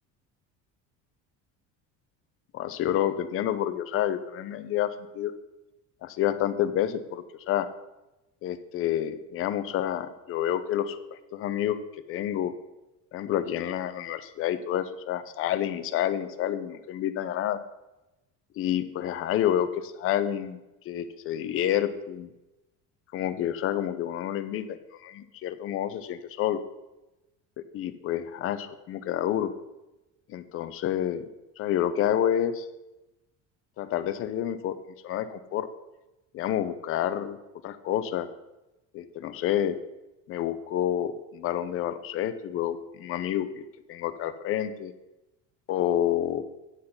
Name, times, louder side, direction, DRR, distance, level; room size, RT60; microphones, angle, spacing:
voice 1, 2.5-5.3 6.0-7.7 8.4-11.8 12.1-12.5 13.1-17.6 18.6-22.3 23.1-26.6 27.7-29.5 30.3-31.2 31.6-32.7 33.8-34.7 35.0-35.7 36.3-37.4 37.6-38.3 38.9-39.8 40.3-44.9 45.7-46.4, left 11 dB, 40° left, 12 dB, 0.7 m, -29 dB
9.7 x 6.5 x 5.5 m, 0.99 s
cardioid pair, 165°, 34 cm